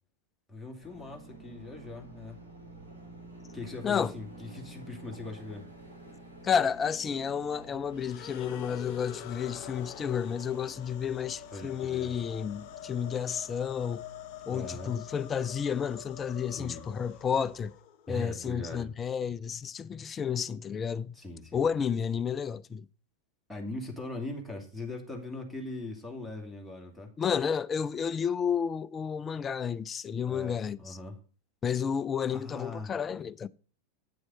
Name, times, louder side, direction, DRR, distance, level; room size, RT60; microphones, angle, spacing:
voice 1, 0.5-2.4 3.5-5.7 11.5-12.1 14.5-15.0 16.5-16.8 18.1-18.9 21.1-21.7 23.5-27.1 30.3-31.2 32.3-32.9, left 2 dB, ahead, 2.3 m, -40 dB
sound 1, 0.8-17.7, right 2 dB, 85° right, 4.1 m, -51 dB
sound 2, 2.5-4.7, right 1 dB, 65° right, 5.5 m, -67 dB
voice 2, 6.4-14.1 14.5-17.7 18.1-21.2 21.5-22.9 27.2-31.0 31.6-33.5, left 7 dB, 20° left, 0.4 m, -31 dB
sound 3, 7.9-18.2, left 12 dB, 45° left, 0.8 m, -46 dB
9.5 x 6.3 x 4.1 m
figure-of-eight pair, 90°, 0 cm